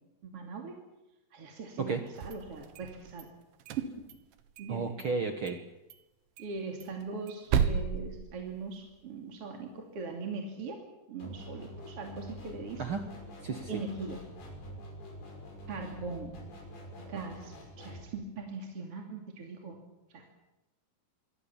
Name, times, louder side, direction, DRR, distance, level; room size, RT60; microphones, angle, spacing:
voice 1, 0.2-0.7 1.3-3.3 3.8-4.0 4.6-4.9 6.4-13.0 13.7-14.2 15.7-16.4 17.0-19.8 20.1-20.3, right 4 dB, 40° right, 2 dB, 3.3 m, -40 dB
sound 1, 2.1-3.2 3.6-4.7 5.0-5.1 5.5-5.6 5.9-6.0 6.4-9.0, right 7 dB, 85° right, 3.6 m, -33 dB
voice 2, 4.7-5.6 12.8-13.0 13.4-13.8, right 4 dB, 65° right, 7 dB, 1.3 m, -33 dB
sound 2, 11.2-18.1, equal, 75° left, 8.1 m, -46 dB
26.0 x 24.5 x 7.3 m, 0.97 s
omnidirectional pair, 4.6 m